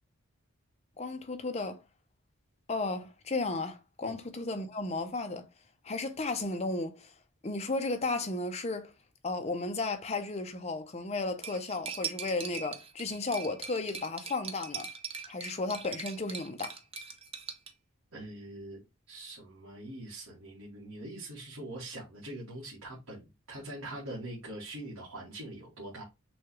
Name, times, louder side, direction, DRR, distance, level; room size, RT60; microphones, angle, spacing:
voice 1, 1.0-1.8 2.7-5.5 5.8-7.1 7.4-8.9 9.2-14.9 15.3-16.7, left 3 dB, 30° left, 0.6 m, -34 dB
Cutlery silverware, 11.4-17.7, right 6 dB, 25° right, 0.5 m, -41 dB
voice 2, 18.1-26.0, right 1 dB, 80° right, 1.4 m, -43 dB
6.2 x 2.4 x 3.0 m
head